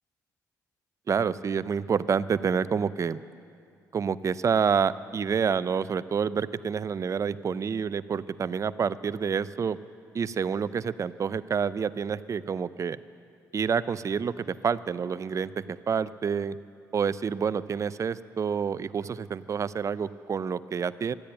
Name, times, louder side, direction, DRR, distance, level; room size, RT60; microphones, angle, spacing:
voice 1, 1.1-3.2 3.9-9.8 10.1-13.0 13.5-16.6 16.9-21.1, right 6 dB, 45° right, 16 dB, 0.5 m, -28 dB
13.5 x 10.0 x 8.8 m, 2.4 s
supercardioid pair, 65°, 7 cm